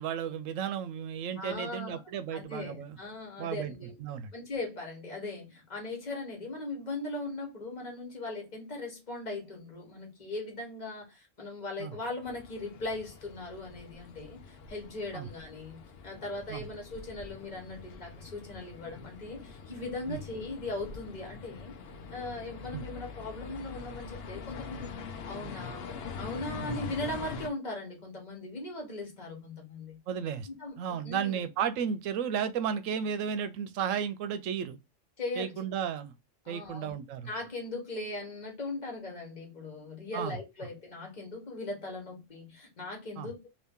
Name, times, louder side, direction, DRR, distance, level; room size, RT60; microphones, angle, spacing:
voice 1, 0.0-3.0 3.4-3.7 4.0-4.3 11.8-11.9 15.1-15.3 16.5-16.6 20.1-20.2 22.7-22.8 26.6-26.7 30.1-30.5 30.8-34.8 35.4-36.1 36.5-37.3 40.1-40.4 43.2-43.3, right 8 dB, 85° right, 1.0 m, -33 dB
voice 2, 1.4-2.0 2.3-4.0 4.3-21.7 22.1-24.9 25.2-25.9 26.2-30.0 30.5-31.4 35.2-35.6 36.4-37.0 37.2-43.5, left 2 dB, 35° left, 1.3 m, -39 dB
sound 1, 12.2-27.5, left 5 dB, 60° left, 0.8 m, -44 dB
2.8 x 2.8 x 3.5 m
omnidirectional pair, 1.3 m